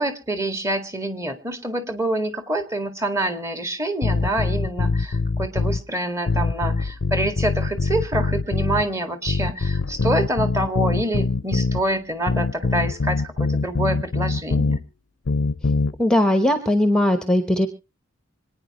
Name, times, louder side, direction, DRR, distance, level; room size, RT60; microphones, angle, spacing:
voice 1, 0.0-14.8, right 1 dB, 15° right, 8 dB, 1.8 m, -26 dB
sound 1, 4.0-5.8 6.3-8.9 9.3-11.8 12.3-14.8 15.3-15.9, left 3 dB, 75° left, 0.6 m, -23 dB
voice 2, 16.0-17.7, left 1 dB, 5° left, 9 dB, 1.0 m, -19 dB
26.0 x 9.6 x 3.0 m, 0.31 s
head